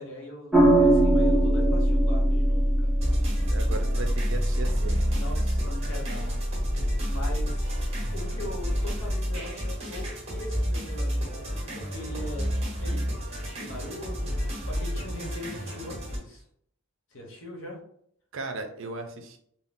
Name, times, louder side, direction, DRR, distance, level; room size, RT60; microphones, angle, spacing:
voice 1, 0.0-2.9 5.1-6.4 6.7-7.6 8.1-12.5 12.8-16.4 17.1-17.8, left 1 dB, 65° left, -1 dB, 1.0 m, -41 dB
sound 1, 0.5-9.1, right 1 dB, 5° right, 0.4 m, -24 dB
sound 2, 3.0-16.2, equal, 30° right, 0.8 m, -31 dB
voice 2, 3.5-5.1 18.3-19.4, right 3 dB, 60° right, 5 dB, 0.5 m, -36 dB
3.6 x 2.1 x 2.5 m, 0.67 s
head